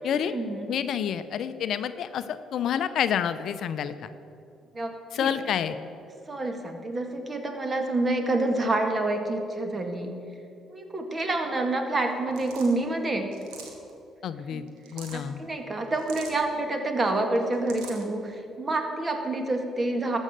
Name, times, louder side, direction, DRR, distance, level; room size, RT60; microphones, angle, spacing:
voice 1, 0.0-0.7 0.9-1.0 4.7-5.3 6.3-10.1 10.7-13.3 14.5-14.6 15.1-20.2, right 2 dB, 35° right, 5 dB, 1.9 m, -28 dB
voice 2, 0.7-4.1 5.1-5.8 14.2-14.6 14.9-15.4, left 8 dB, 65° left, 12 dB, 0.5 m, -28 dB
sound 1, 12.3-12.8 13.3-13.9 14.7-15.2 15.9-16.4 17.4-18.0, right 6 dB, 80° right, 1.5 m, -43 dB
13.5 x 6.4 x 7.8 m, 2.7 s
hypercardioid pair, 55°, 0 cm